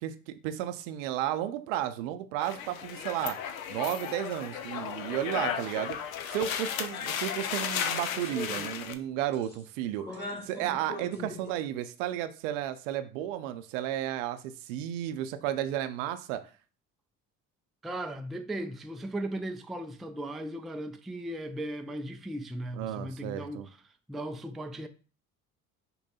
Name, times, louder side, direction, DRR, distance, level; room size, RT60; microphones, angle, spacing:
voice 1, 0.0-3.4 3.7-6.0 6.3-10.2 10.4-16.4 22.8-23.7, right 12 dB, 65° right, 0.6 m, -33 dB
sound 1, 2.4-8.9, left 8 dB, 80° left, 0.6 m, -34 dB
sound 2, 6.9-7.1 7.5-7.6 8.1-9.0 9.3-9.6 10.0-11.5, left 2 dB, 25° left, 2.2 m, -41 dB
voice 2, 17.8-23.8 24.1-24.9, right 1 dB, ahead, 0.3 m, -37 dB
5.3 x 2.2 x 4.1 m
figure-of-eight pair, 55°, 41 cm